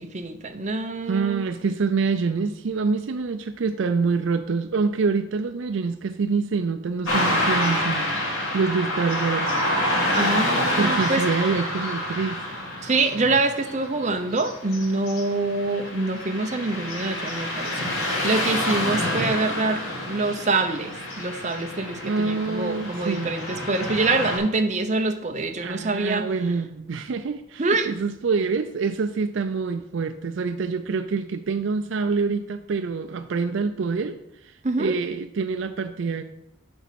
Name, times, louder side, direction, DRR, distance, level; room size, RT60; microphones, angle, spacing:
voice 1, 0.0-1.7 10.1-11.2 12.8-26.3 27.6-27.9 34.6-34.9, right 3 dB, 35° right, 6 dB, 0.7 m, -25 dB
voice 2, 1.1-9.6 10.8-12.4 22.0-23.3 25.6-34.2 34.4-36.2, right 4 dB, 65° right, 9 dB, 0.4 m, -26 dB
Car passing by / Traffic noise roadway noise, 7.0-24.4, left 1 dB, 85° left, 2.5 m, -28 dB
7.1 x 6.2 x 5.8 m, 0.84 s
head